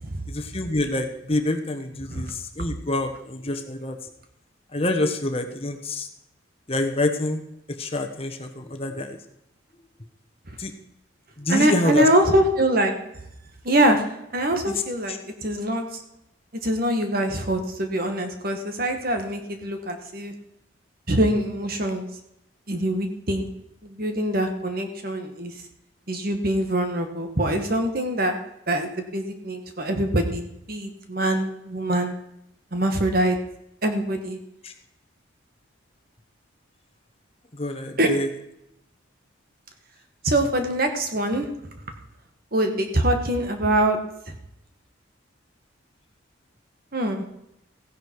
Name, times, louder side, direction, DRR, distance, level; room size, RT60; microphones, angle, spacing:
voice 1, 0.3-4.0 4.7-6.1 6.7-7.4 7.7-9.2 10.6-10.7 11.4-12.1 15.1-15.2 34.6-34.7 37.5-38.3, left 2 dB, 30° left, 6 dB, 1.1 m, -26 dB
voice 2, 11.5-12.9 13.6-14.1 14.3-16.0 16.6-20.3 21.1-22.1 22.7-23.5 23.8-25.5 26.1-28.4 28.7-32.1 32.7-33.4 33.8-34.4 38.0-38.1 40.2-41.5 42.5-44.0 46.9-47.3, right 1 dB, 45° right, 5 dB, 1.7 m, -24 dB
15.5 x 10.5 x 4.7 m, 0.80 s
head